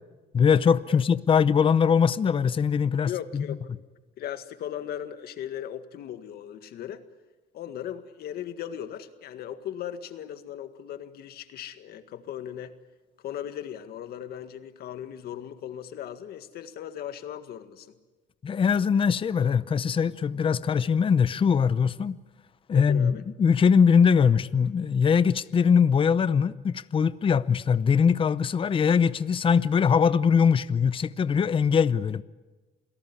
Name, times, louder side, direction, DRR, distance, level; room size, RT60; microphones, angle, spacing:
voice 1, 0.3-3.4 18.4-22.2 22.7-32.2, left 6 dB, 30° left, 0.7 m, -22 dB
voice 2, 3.0-3.6 4.2-7.0 7.5-12.8 13.2-17.9 22.7-23.3, left 10 dB, 70° left, 1.8 m, -37 dB
28.0 x 17.5 x 9.8 m
cardioid pair, 110°, 17 cm